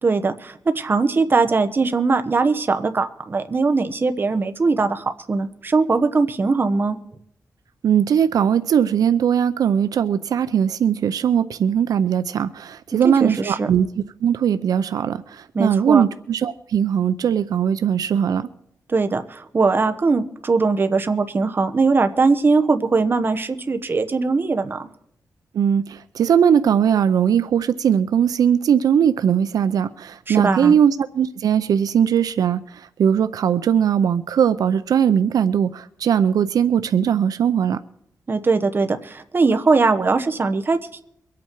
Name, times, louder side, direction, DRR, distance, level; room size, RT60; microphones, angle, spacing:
voice 1, 0.0-7.0 12.9-13.7 15.5-16.0 18.9-24.9 30.3-30.7 38.3-41.0, right 4 dB, 35° right, 1.1 m, -20 dB
voice 2, 7.8-13.9 14.2-18.5 25.5-37.8, right 8 dB, 85° right, 0.5 m, -19 dB
23.5 x 8.5 x 4.6 m
wide cardioid pair, 125°, 6 cm